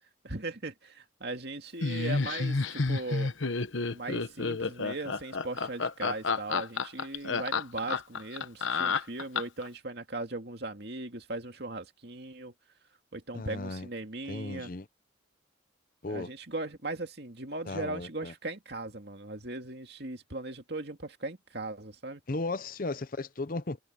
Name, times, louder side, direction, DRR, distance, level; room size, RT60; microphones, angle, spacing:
voice 1, 0.2-3.3 3.9-12.5 13.1-14.7 16.1-22.2, right 2 dB, 55° right, 2.4 m, -38 dB
Laughter, 1.8-9.7, left 4 dB, 75° left, 1.1 m, -30 dB
voice 2, 13.3-13.9 14.3-14.9 16.0-16.3 17.7-18.3 22.3-23.8, left 2 dB, 45° left, 0.8 m, -35 dB
head